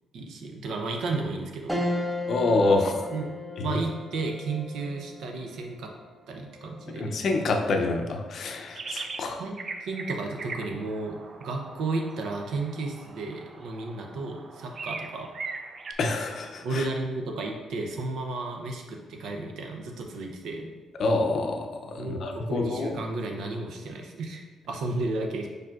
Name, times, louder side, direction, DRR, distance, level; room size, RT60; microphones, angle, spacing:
voice 1, 0.1-1.8 3.1-3.3 3.6-5.9 6.3-7.1 9.4-15.3 16.6-20.7 22.0-25.5, right 3 dB, 75° right, 2 dB, 0.6 m, -33 dB
sound 1, 1.7-11.3 11.8-11.9 13.2-13.7, left 1 dB, 10° right, 0.7 m, -38 dB
voice 2, 2.3-3.1 3.6-3.7 6.9-9.4 16.0-16.9 21.0-23.0, left 3 dB, 60° left, 3 dB, 0.5 m, -27 dB
sound 2, 8.7-9.3 9.6-15.9, right 4 dB, 40° right, 0.4 m, -40 dB
4.8 x 4.5 x 2.5 m, 1.3 s
cardioid pair, 90°, 0 cm